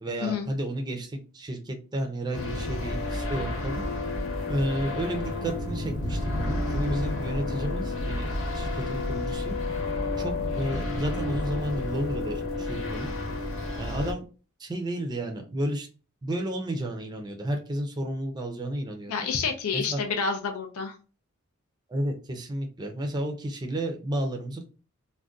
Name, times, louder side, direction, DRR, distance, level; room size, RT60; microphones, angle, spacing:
voice 1, 0.0-3.8 4.5-9.6 10.2-13.1 13.8-14.2 14.6-15.9 16.2-19.1 19.7-20.0 21.9-24.7, right 1 dB, 20° right, 3 dB, 0.5 m, -32 dB
sound 1, 2.3-14.1, left 2 dB, 65° left, 0.9 m, -30 dB
voice 2, 19.1-21.0, left 5 dB, 80° left, 5 dB, 0.5 m, -29 dB
2.5 x 2.1 x 3.6 m, 0.35 s
head